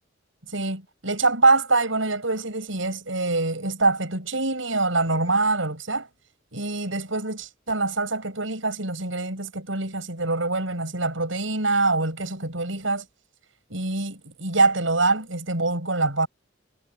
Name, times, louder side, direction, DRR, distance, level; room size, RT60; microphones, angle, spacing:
voice 1, 0.5-6.1 6.5-13.0 13.7-16.3, right 3 dB, 80° right, 6.7 m, -24 dB
head